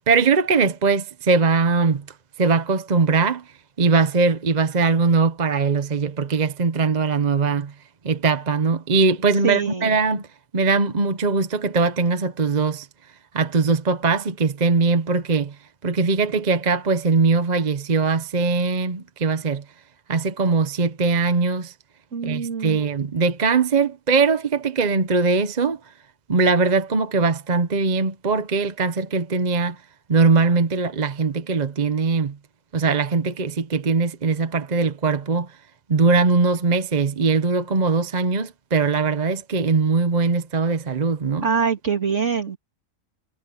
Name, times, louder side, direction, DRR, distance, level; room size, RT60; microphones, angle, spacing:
voice 1, 0.1-2.0 2.4-3.4 3.8-7.7 8.0-10.3 10.5-12.9 13.3-15.5 15.8-19.6 20.1-21.7 22.2-25.8 26.3-29.8 30.1-32.4 32.7-35.5 35.9-41.5, right 4 dB, 35° right, 1.0 m, -21 dB
voice 2, 9.4-10.0 22.1-22.8 41.4-42.6, right 6 dB, 60° right, 3.0 m, -24 dB
omnidirectional pair, 1.4 m